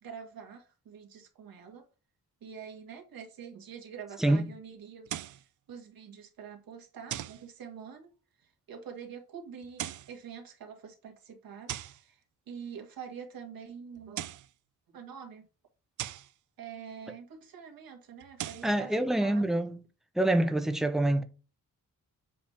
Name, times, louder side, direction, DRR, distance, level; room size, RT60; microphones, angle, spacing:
voice 1, 0.0-1.8 2.4-8.1 8.4-14.3 14.9-15.5 16.6-19.5, right 7 dB, 85° right, 1.9 m, -46 dB
sound 1, 5.1-5.4 7.1-7.4 9.6-10.1 11.7-12.0 14.0-14.5 16.0-16.3 18.2-18.7, right 12 dB, 60° right, 0.5 m, -39 dB
voice 2, 18.6-19.8 20.2-21.2, right 1 dB, ahead, 0.6 m, -26 dB
7.5 x 3.5 x 4.2 m
wide cardioid pair, 145°, 34 cm